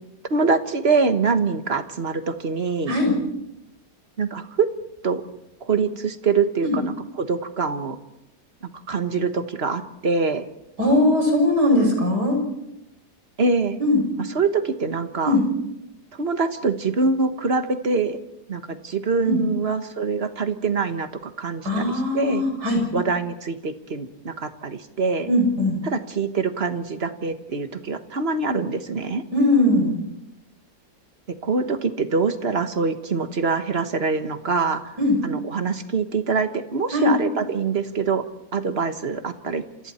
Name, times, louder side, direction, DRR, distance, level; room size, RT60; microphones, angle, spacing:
voice 1, 0.3-2.9 4.2-4.7 5.0-5.2 5.6-8.0 8.9-10.4 13.4-13.8 14.2-15.4 16.2-18.2 18.5-22.4 22.9-25.3 25.8-29.2 31.4-34.9 35.2-38.2 38.5-39.6, right 4 dB, 40° right, 9 dB, 1.5 m, -24 dB
voice 2, 10.8-12.4 13.8-14.0 15.2-15.4 19.2-19.4 21.6-22.8 25.3-25.8 29.3-30.0 35.0-35.2 36.9-37.1, left 1 dB, 70° right, 2 dB, 7.1 m, -20 dB
28.5 x 27.5 x 4.4 m, 0.89 s
omnidirectional pair, 1.8 m